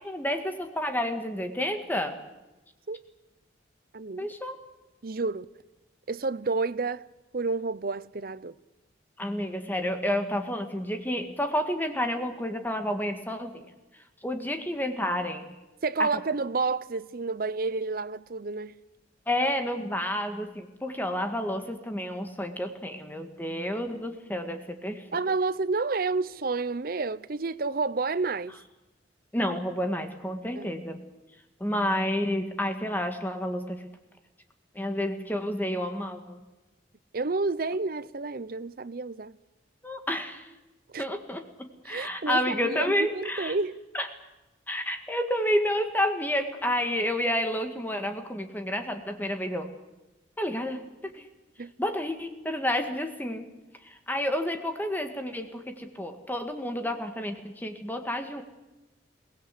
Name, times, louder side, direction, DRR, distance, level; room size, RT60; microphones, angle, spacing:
voice 1, 0.0-2.2 4.2-4.5 9.2-13.7 13.9-15.4 16.0-16.1 19.3-25.2 29.3-31.0 31.6-33.8 34.7-36.4 39.8-40.5 41.0-43.6 43.9-44.1 44.7-49.7 50.4-51.3 51.8-53.5 53.8-58.4, left 1 dB, 10° left, 1.7 m, -30 dB
voice 2, 3.9-4.3 5.0-5.5 6.1-7.1 7.3-8.6 15.8-18.8 25.1-28.6 30.6-30.7 37.1-39.3 40.9-41.1 41.9-43.8 51.6-51.7, right 3 dB, 50° right, 0.7 m, -30 dB
23.0 x 18.0 x 8.3 m
head